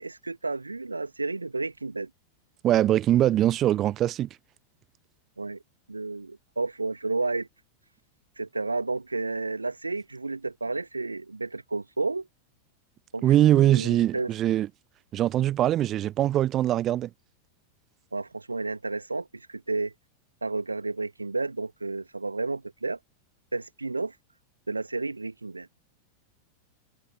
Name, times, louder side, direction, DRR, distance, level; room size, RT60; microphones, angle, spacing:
voice 1, 0.0-2.1 5.4-5.6 5.9-7.5 8.4-12.3 13.1-13.2 13.5-14.3 18.1-19.9 20.4-23.0 23.5-24.1 24.7-25.7, right 3 dB, 80° right, 2.5 m, -31 dB
voice 2, 2.6-4.3 13.2-14.7 15.1-17.1, right 12 dB, 30° right, 1.2 m, -22 dB
figure-of-eight pair, 90°, 0 cm